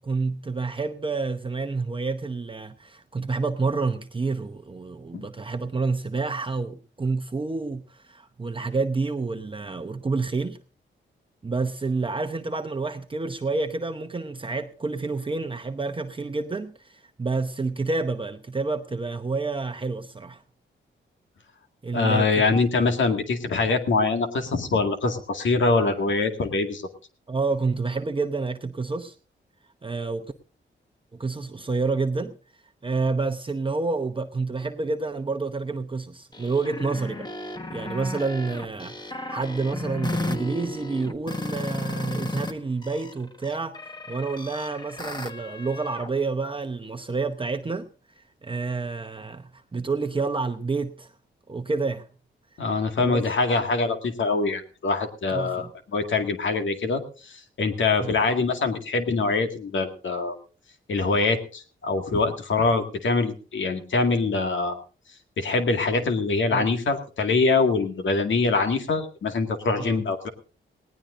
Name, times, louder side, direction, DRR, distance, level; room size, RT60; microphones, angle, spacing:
voice 1, 0.0-10.6 11.4-20.4 21.8-22.6 27.3-29.1 29.8-30.3 31.1-32.3 32.8-37.3 37.7-43.8 44.1-47.9 48.2-51.1 51.5-52.1 53.0-53.2 55.3-55.7 58.0-58.1 66.5-66.7 69.8-70.0, right 3 dB, 25° right, 7 dB, 0.9 m, -29 dB
voice 2, 21.9-26.8 52.6-55.7 55.9-60.4 60.9-64.8 65.4-70.3, left 3 dB, 75° left, 6 dB, 2.1 m, -24 dB
sound 1, 36.3-42.5 42.8-46.1, left 2 dB, 20° left, 1.4 m, -34 dB
19.5 x 18.0 x 2.6 m, 0.37 s
wide cardioid pair, 105°, 20 cm